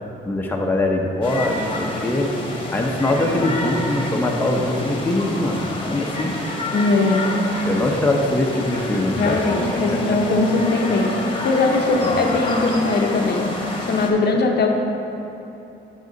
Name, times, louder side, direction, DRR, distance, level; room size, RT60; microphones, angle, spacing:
voice 1, 0.2-2.3 2.7-5.6 5.9-6.3 7.6-9.4 9.7-10.0 12.0-12.3, left 1 dB, 10° left, 0 dB, 0.8 m, -22 dB
sound 1, 1.2-14.1, left 2 dB, 25° left, 1.2 m, -28 dB
voice 2, 6.7-7.3 9.1-11.2 11.4-13.5 13.8-14.7, left 3 dB, 55° left, 2 dB, 0.8 m, -20 dB
8.0 x 6.6 x 4.0 m, 3.0 s
cardioid pair, 90°, 20 cm